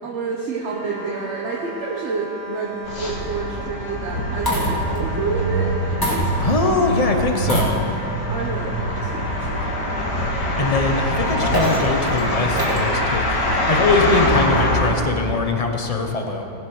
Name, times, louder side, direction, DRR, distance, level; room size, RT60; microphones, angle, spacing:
voice 1, 0.0-5.8 8.3-10.0 10.5-11.4, right 4 dB, 45° right, -2 dB, 1.1 m, -29 dB
sound 1, 0.7-12.5, equal, 65° right, 4.3 m, -36 dB
sound 2, 2.8-14.9, equal, 60° left, 2.2 m, -23 dB
sound 3, 2.8-3.1 4.1-5.0 6.0-6.7 7.4-8.2 8.9-9.0 11.1-13.0 14.2-14.6, equal, 10° left, 2.2 m, -26 dB
voice 2, 6.4-7.9 10.2-10.3 10.6-16.4, left 3 dB, 40° left, 3 dB, 0.5 m, -22 dB
17.5 x 8.1 x 6.3 m, 3.0 s
omnidirectional pair, 2.1 m